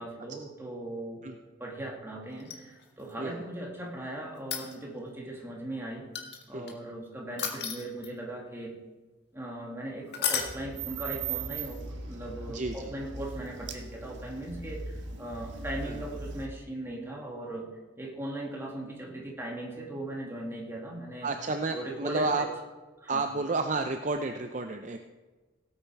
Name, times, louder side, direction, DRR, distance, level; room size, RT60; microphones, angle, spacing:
voice 1, 0.0-1.3 1.6-6.1 6.5-8.8 9.3-17.7 18.0-21.3 21.7-22.5 23.0-23.2, right 1 dB, 15° right, -1 dB, 2.4 m, -39 dB
sound 1, 2.4-3.1 4.4-5.1 6.1-6.7 7.4-8.3 10.1-10.6 12.8-12.9, left 7 dB, 60° left, 1.9 m, -33 dB
sound 2, 10.3-16.5, right 4 dB, 75° right, 1.5 m, -39 dB
voice 2, 12.5-12.9 15.9-16.0 21.2-22.5 23.1-25.0, right 3 dB, 40° right, 6 dB, 0.6 m, -31 dB
17.0 x 8.9 x 4.6 m, 1.3 s
head